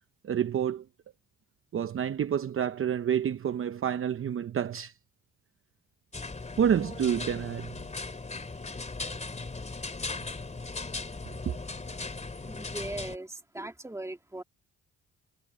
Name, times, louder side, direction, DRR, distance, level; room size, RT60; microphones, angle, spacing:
voice 1, 0.2-0.9 1.7-4.9 6.6-7.8 11.4-11.6, right 8 dB, 45° right, 0.8 m, -28 dB
sound 1, 6.1-13.2, left 3 dB, 25° left, 3.1 m, -38 dB
voice 2, 12.4-14.4, right 2 dB, 10° right, 2.6 m, -39 dB
cardioid pair, 90°, 30 cm